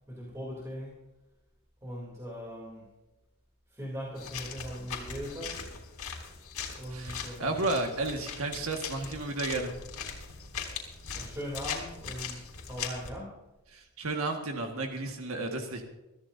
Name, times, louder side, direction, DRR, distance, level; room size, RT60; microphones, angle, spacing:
voice 1, 0.1-1.0 1.8-2.9 3.7-5.7 6.7-7.7 11.1-13.4, equal, 15° right, -4 dB, 3.2 m, -40 dB
sound 1, 4.2-13.1, left 6 dB, 85° left, 3.5 m, -40 dB
voice 2, 6.9-9.8 13.7-15.8, right 2 dB, 75° right, 3 dB, 1.8 m, -32 dB
23.0 x 14.0 x 2.8 m, 1.0 s
head